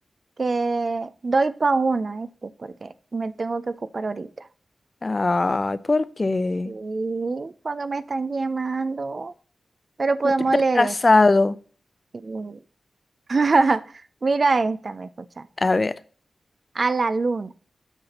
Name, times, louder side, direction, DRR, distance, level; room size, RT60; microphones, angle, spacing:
voice 1, 0.4-4.5 6.7-9.3 10.0-10.9 12.1-12.6 13.3-13.8 14.2-15.4 16.7-17.5, right 3 dB, 45° right, 0.3 m, -24 dB
voice 2, 5.0-6.7 10.2-10.3 10.7-11.6 15.6-15.9, left 3 dB, 35° left, 0.4 m, -20 dB
7.9 x 5.7 x 2.9 m
wide cardioid pair, 90°, 0 cm